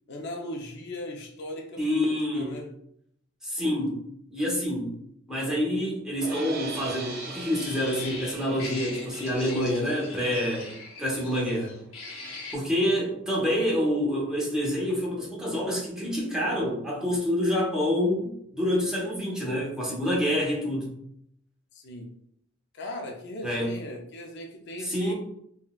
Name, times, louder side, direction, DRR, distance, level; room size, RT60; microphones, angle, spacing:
voice 1, 0.1-2.0 2.3-2.7 21.7-22.1 22.7-25.1, left 1 dB, 55° left, 1 dB, 0.4 m, -38 dB
voice 2, 1.8-2.6 3.4-4.0 4.3-5.0 5.3-10.7 11.0-11.8 12.5-21.0 23.4-23.7 24.8-25.1, equal, 5° right, -5 dB, 0.8 m, -27 dB
sound 1, 6.2-12.4, right 4 dB, 55° right, 0.4 m, -42 dB
sound 2, 6.9-12.5, left 3 dB, 85° left, 0.8 m, -40 dB
3.8 x 2.2 x 2.3 m, 0.70 s
head